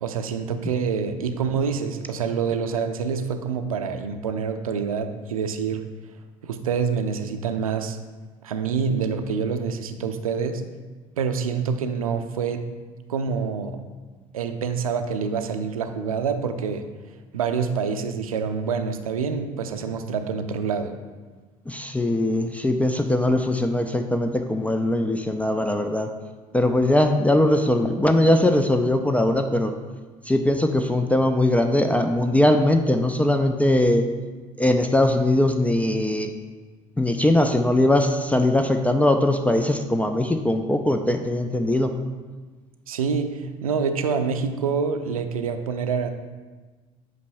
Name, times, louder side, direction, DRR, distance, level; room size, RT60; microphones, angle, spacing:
voice 1, 0.0-5.9 6.4-8.0 8.4-10.6 11.2-12.7 13.1-13.8 14.3-16.8 17.3-20.9 42.9-46.1, right 6 dB, 80° right, 8 dB, 0.5 m, -26 dB
voice 2, 21.7-26.1 26.5-29.7 30.2-34.0 34.6-36.3 37.0-41.9, left 1 dB, 10° left, 6 dB, 0.4 m, -21 dB
8.1 x 5.2 x 2.6 m, 1.3 s
figure-of-eight pair, 60°, 18 cm